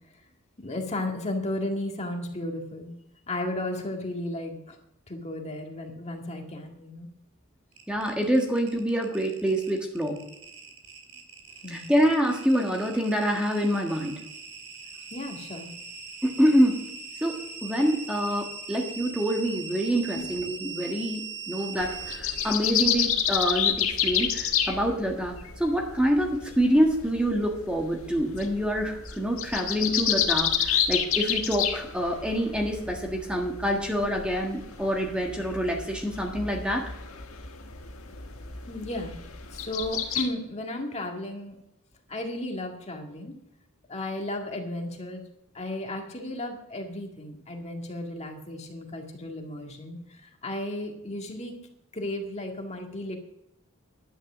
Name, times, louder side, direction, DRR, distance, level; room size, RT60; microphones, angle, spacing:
voice 1, 0.6-2.9 3.3-4.8 5.1-7.1 11.6-11.9 15.1-15.7 20.1-20.3 38.7-41.6 42.1-43.4 43.9-45.2 45.5-51.5 51.9-53.2, left 1 dB, 30° left, 2 dB, 2.0 m, -34 dB
sound 1, 7.7-22.6, right 5 dB, 85° right, 2.9 m, -41 dB
voice 2, 7.9-10.2 11.7-14.1 16.2-16.9 17.2-36.9, equal, 5° right, 1 dB, 1.6 m, -26 dB
sound 2, 21.8-40.2, left 8 dB, 75° left, 1.6 m, -30 dB
11.0 x 9.9 x 6.2 m, 0.80 s
head